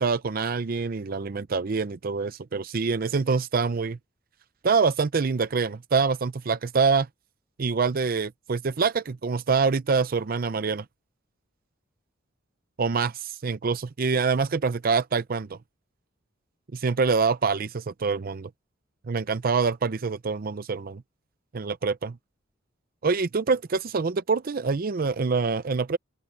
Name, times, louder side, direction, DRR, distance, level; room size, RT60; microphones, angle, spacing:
voice 1, 0.0-4.0 4.6-7.1 7.6-10.8 12.8-15.6 16.7-18.5 19.1-21.0 21.5-22.2 23.0-26.0, right 4 dB, 50° right, 0.5 m, -25 dB
open air
head